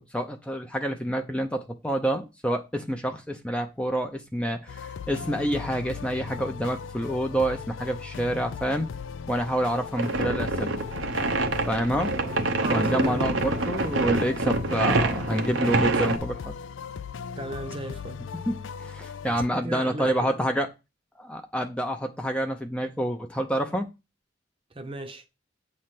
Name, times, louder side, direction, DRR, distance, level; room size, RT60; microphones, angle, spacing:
voice 1, 0.0-8.9 9.3-10.7 11.5-12.1 12.7-16.5 18.5-18.6 18.8-20.7 21.2-23.9, equal, 5° left, 0.6 m, -28 dB
sound 1, 4.7-19.5, left 6 dB, 80° left, 0.4 m, -38 dB
sound 2, 9.9-16.2, right 3 dB, 85° right, 0.9 m, -26 dB
voice 2, 12.6-13.4 17.4-18.3 19.5-20.4 24.7-25.3, right 2 dB, 30° right, 0.8 m, -35 dB
8.6 x 3.2 x 5.8 m
head